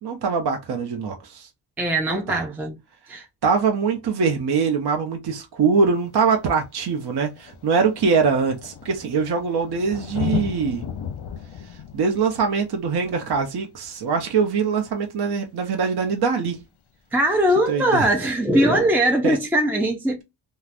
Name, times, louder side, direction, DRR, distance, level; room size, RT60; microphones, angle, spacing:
voice 1, 0.0-1.5 2.1-2.4 3.4-10.8 11.9-16.6 17.7-18.1 19.2-19.4, right 5 dB, 55° right, 0.8 m, -23 dB
voice 2, 1.8-2.8 3.1-3.2 17.1-20.2, right 1 dB, 5° right, 0.3 m, -20 dB
Thunder, 5.8-5.9 6.9-7.0 7.2-14.5 16.2-16.3, left 10 dB, 60° left, 0.7 m, -35 dB
3.3 x 2.3 x 2.5 m
cardioid pair, 105°, 46 cm